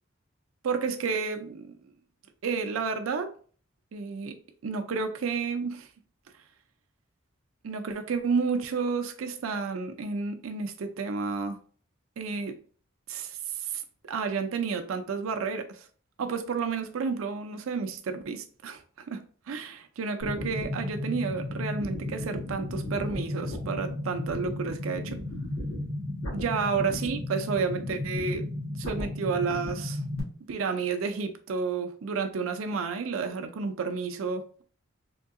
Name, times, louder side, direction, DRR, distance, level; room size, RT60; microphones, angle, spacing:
voice 1, 0.6-1.7 2.4-3.3 3.9-4.3 4.6-5.9 7.6-11.6 12.2-12.6 13.1-15.9 16.2-18.8 19.1-19.2 19.5-25.2 26.3-28.5 28.8-30.0 30.5-34.6, right 5 dB, 85° right, 0.4 m, -31 dB
sound 1, 20.2-30.2, left 1 dB, 85° left, 1.3 m, -34 dB
3.6 x 2.7 x 2.4 m
head